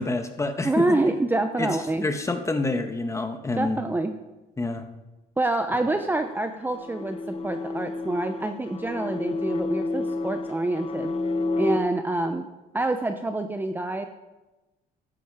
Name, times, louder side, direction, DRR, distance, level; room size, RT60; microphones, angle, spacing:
voice 1, 0.0-0.7 1.6-1.7 2.0-3.8 4.6-4.9, left 2 dB, 15° left, 6 dB, 1.6 m, -27 dB
voice 2, 0.6-2.1 3.6-4.2 5.4-11.1 11.6-12.5 12.7-14.1, right 2 dB, 10° right, 7 dB, 0.9 m, -26 dB
sound 1, 5.8-11.8, left 3 dB, 35° left, 1.1 m, -30 dB
13.5 x 13.0 x 5.0 m, 1.0 s
cardioid pair, 110°, 17 cm